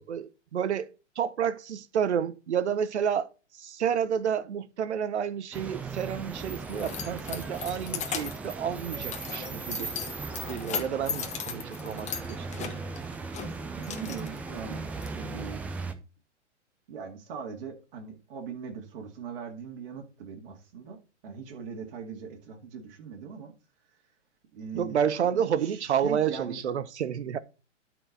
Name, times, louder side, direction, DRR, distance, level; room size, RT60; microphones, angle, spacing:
voice 1, 0.0-3.3 3.5-9.9 10.5-12.8 24.7-27.4, right 8 dB, 65° right, 0.9 m, -30 dB
sound 1, 5.5-15.9, right 4 dB, 5° right, 0.3 m, -38 dB
Keys jangling, 6.0-15.1, left 7 dB, 20° left, 1.4 m, -38 dB
voice 2, 13.8-14.9 15.1-15.6 16.9-23.5 24.5-25.0 25.3-26.6, right 6 dB, 50° right, 2.3 m, -40 dB
12.5 x 4.8 x 4.0 m
figure-of-eight pair, 115°, 36 cm